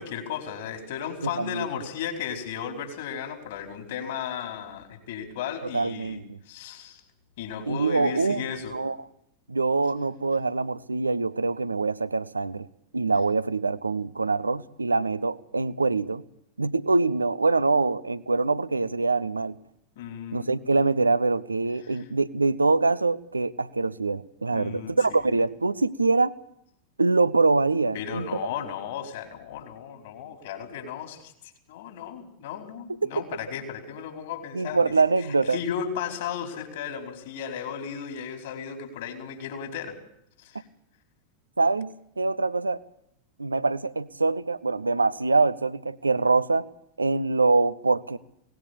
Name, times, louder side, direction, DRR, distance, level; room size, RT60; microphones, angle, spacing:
voice 1, 0.0-6.2 6.5-7.0 7.4-8.7 20.0-20.5 21.9-22.0 24.5-24.9 27.9-31.3 31.7-34.9 35.5-40.0 40.4-40.6, left 8 dB, 55° left, 5 dB, 4.8 m, -35 dB
voice 2, 1.2-1.7 5.6-6.4 7.7-8.4 8.7-9.0 9.5-12.7 12.9-16.2 16.6-19.6 20.3-26.3 27.0-28.3 33.0-33.1 34.5-35.6 41.6-42.8 43.4-46.6 47.0-48.2, right 3 dB, 80° right, 17 dB, 0.8 m, -24 dB
22.5 x 19.5 x 6.7 m, 0.76 s
figure-of-eight pair, 90°, 0 cm